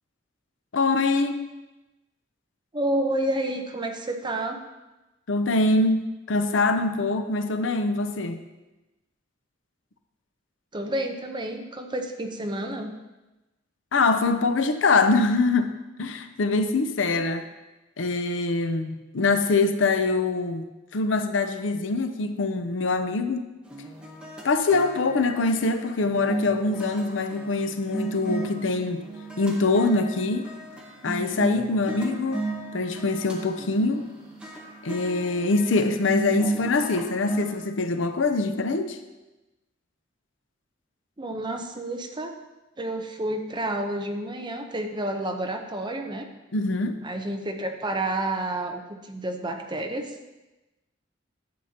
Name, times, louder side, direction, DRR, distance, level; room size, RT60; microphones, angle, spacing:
voice 1, 0.7-1.5 5.3-8.4 13.9-17.5 18.0-20.6 20.9-23.5 24.4-29.0 29.4-30.5 31.0-32.4 32.7-34.1 34.8-39.0 46.5-47.0, left 3 dB, 70° left, 8 dB, 0.6 m, -24 dB
voice 2, 2.7-4.6 10.7-12.9 41.2-42.3 42.8-46.3 47.0-50.2, right 1 dB, 25° right, 4 dB, 0.8 m, -30 dB
sound 1, 23.7-37.6, right 2 dB, 5° right, 1.2 m, -35 dB
11.5 x 8.0 x 2.9 m, 1.0 s
head